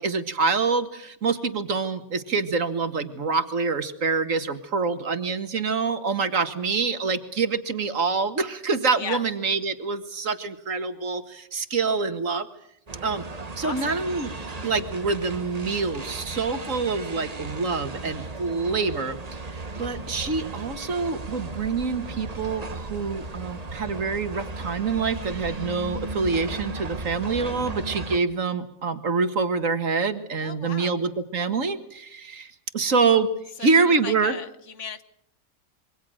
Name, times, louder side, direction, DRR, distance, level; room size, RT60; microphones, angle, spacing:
voice 1, 0.0-12.5 13.0-13.2 13.6-14.3 14.6-19.4 19.8-33.3 33.6-34.3, right 4 dB, 80° right, 9 dB, 2.1 m, -26 dB
voice 2, 8.9-9.3 13.6-14.0 30.4-31.0 33.6-34.5 34.7-35.0, left 6 dB, 65° left, 12 dB, 1.5 m, -36 dB
sound 1, 12.9-28.2, right 2 dB, 30° right, 1.3 m, -36 dB
27.0 x 23.0 x 6.4 m, 0.73 s
omnidirectional pair, 1.3 m